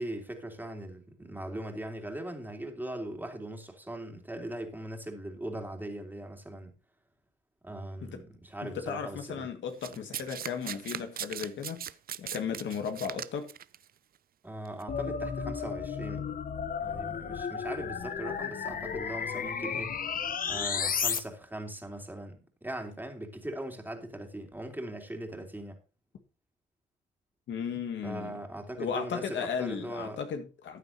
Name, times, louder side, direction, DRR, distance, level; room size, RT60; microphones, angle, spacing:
voice 1, 0.0-6.8 7.6-9.5 14.4-16.4 16.8-20.0 20.5-25.8 28.0-30.2, right 1 dB, 10° right, 3.0 m, -40 dB
voice 2, 8.6-11.8 12.2-13.5 27.5-28.3 28.8-30.8, left 7 dB, 70° left, 2.0 m, -35 dB
Domestic sounds home sounds, 9.8-13.8 14.6-14.8, right 10 dB, 50° right, 0.5 m, -39 dB
sound 1, 14.9-21.2, left 6 dB, 45° left, 1.1 m, -33 dB
14.0 x 9.3 x 2.8 m
cardioid pair, 90°, 20 cm